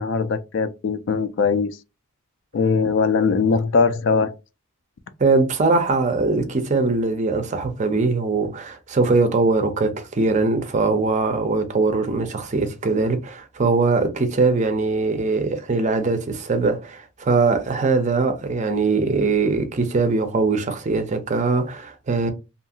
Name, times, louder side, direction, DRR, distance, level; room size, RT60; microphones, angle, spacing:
voice 1, 0.0-1.7 2.5-4.3, left 5 dB, 55° left, 0.3 m, -20 dB
voice 2, 5.2-22.3, right 3 dB, 35° right, 0.4 m, -21 dB
2.7 x 2.4 x 2.7 m
head